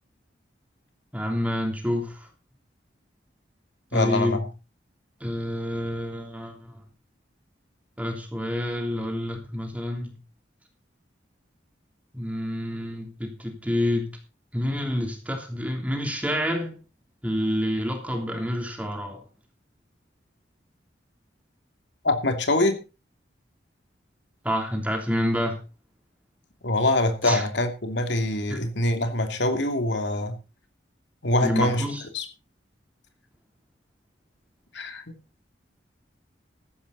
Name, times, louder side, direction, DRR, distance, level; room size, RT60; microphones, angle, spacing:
voice 1, 1.1-2.3 3.9-4.5 5.2-6.8 8.0-10.2 12.1-14.1 14.5-16.8 17.2-19.2 24.4-25.6 27.2-27.4 28.5-28.6 31.4-32.0, equal, 10° right, 3 dB, 3.2 m, -28 dB
voice 2, 3.9-4.4 22.0-22.8 26.6-30.4 31.2-31.8 32.1-32.3 34.7-35.0, left 1 dB, 70° left, 6 dB, 2.6 m, -24 dB
14.5 x 11.5 x 4.1 m, 0.31 s
head